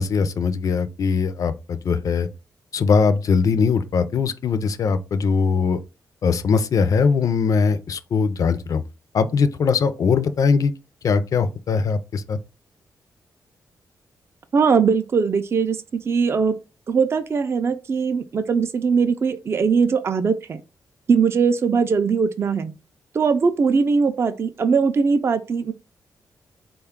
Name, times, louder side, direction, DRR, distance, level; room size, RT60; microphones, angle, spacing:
voice 1, 0.0-2.3 2.7-5.8 6.2-8.8 9.1-10.7 11.0-12.4, left 5 dB, 55° left, 0.4 m, -21 dB
voice 2, 14.5-16.6 16.9-20.6 21.1-22.7 23.1-25.7, right 5 dB, 40° right, 0.3 m, -20 dB
3.7 x 2.3 x 3.5 m
cardioid pair, 100°, 7 cm